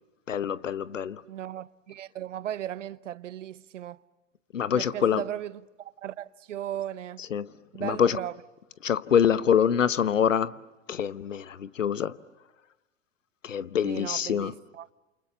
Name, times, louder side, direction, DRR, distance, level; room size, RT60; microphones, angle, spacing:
voice 1, 0.3-1.2 4.5-5.2 7.3-7.5 7.8-8.2 8.8-10.5 10.9-12.2 13.4-14.5, left 8 dB, 80° left, 1.0 m, -25 dB
voice 2, 1.3-4.0 4.7-7.3 7.7-8.4 13.8-14.9, right 11 dB, 70° right, 0.9 m, -36 dB
29.5 x 28.5 x 6.9 m
figure-of-eight pair, 90°, 38 cm